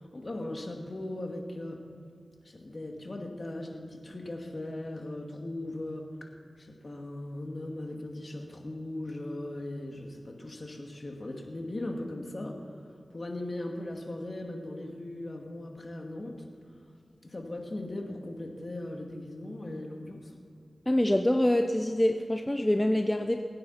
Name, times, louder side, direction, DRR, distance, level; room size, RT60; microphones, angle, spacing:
voice 1, 0.1-1.8 2.4-6.3 6.6-12.7 13.1-16.3 17.2-20.3, left 1 dB, 50° left, 2 dB, 2.4 m, -38 dB
voice 2, 20.9-23.4, left 1 dB, 20° left, 5 dB, 0.8 m, -25 dB
21.0 x 9.5 x 5.8 m, 2.4 s
cardioid pair, 40°, 0 cm